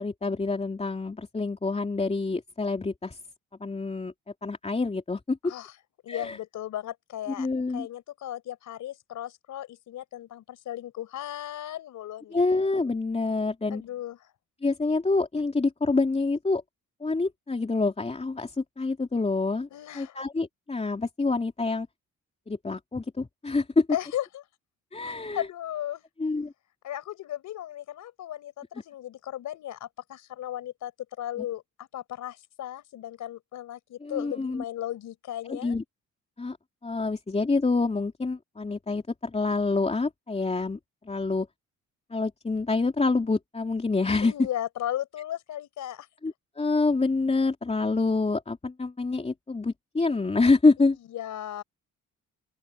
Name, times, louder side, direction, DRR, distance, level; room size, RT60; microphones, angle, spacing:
voice 1, 0.0-3.2 3.6-4.1 4.4-5.5 6.1-6.4 7.4-7.9 12.3-13.8 14.6-16.6 17.0-19.7 19.9-21.9 22.5-23.9 24.9-25.5 26.2-26.5 31.4-31.5 34.0-34.6 35.5-35.8 36.4-36.6 36.8-40.8 41.0-41.5 42.1-44.3 46.2-51.0, left 3 dB, 20° left, 3.3 m, -27 dB
voice 2, 6.0-7.5 7.7-12.4 13.7-14.3 19.7-20.2 23.9-24.4 25.0-26.0 26.8-30.9 31.2-35.7 44.2-46.1 50.8-51.6, left 12 dB, 75° left, 4.7 m, -36 dB
open air
cardioid pair, 90°, 30 cm